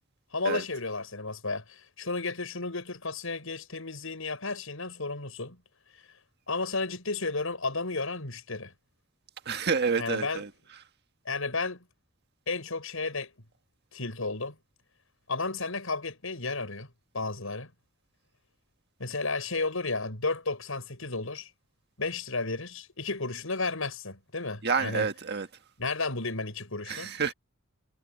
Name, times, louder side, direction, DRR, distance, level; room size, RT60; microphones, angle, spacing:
voice 1, 0.3-5.6 6.5-8.7 10.0-10.4 11.3-11.8 12.5-13.3 13.9-14.6 15.3-16.9 17.1-17.7 19.0-21.5 22.0-25.1 25.8-27.1, left 3 dB, 90° left, 6.0 m, -33 dB
voice 2, 9.4-10.5 24.6-25.5 26.9-27.3, right 5 dB, 55° right, 1.6 m, -28 dB
head